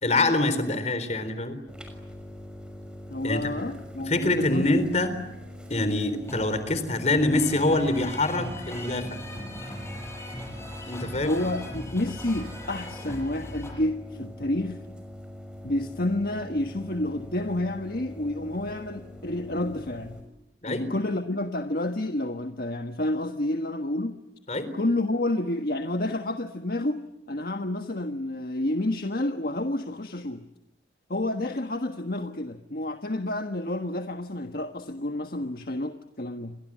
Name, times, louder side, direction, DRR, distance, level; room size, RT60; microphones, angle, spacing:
voice 1, 0.0-1.6 3.2-3.5 4.1-5.1 5.7-9.2 10.9-11.3 20.6-20.9 24.5-24.7, left 2 dB, 40° left, 3.9 m, -25 dB
sound 1, 1.7-20.2, left 1 dB, 5° right, 6.0 m, -43 dB
voice 2, 3.1-4.8 11.2-14.8 15.6-20.2 20.7-24.2 24.7-30.4 31.1-36.6, left 1 dB, 55° left, 1.4 m, -29 dB
sound 2, 6.2-13.7, left 1 dB, 15° left, 7.7 m, -40 dB
29.5 x 25.0 x 7.5 m
head